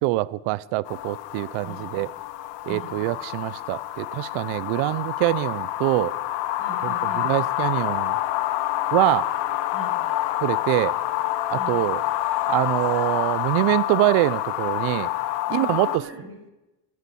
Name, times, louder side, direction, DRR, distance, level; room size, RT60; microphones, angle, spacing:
voice 1, 0.0-2.1 2.7-6.1 6.8-8.2 8.9-9.3 10.4-10.9 11.5-12.0 12.5-15.1 15.5-16.0, right 18 dB, 75° right, 0.7 m, -24 dB
sound 1, 0.9-16.0, left 14 dB, 65° left, 0.9 m, -27 dB
voice 2, 1.6-2.0 2.7-3.0 6.6-7.3 9.7-10.0 11.5-11.8 15.5-16.5, right 2 dB, 30° right, 5.5 m, -40 dB
14.5 x 13.0 x 5.5 m
cardioid pair, 155°, 47 cm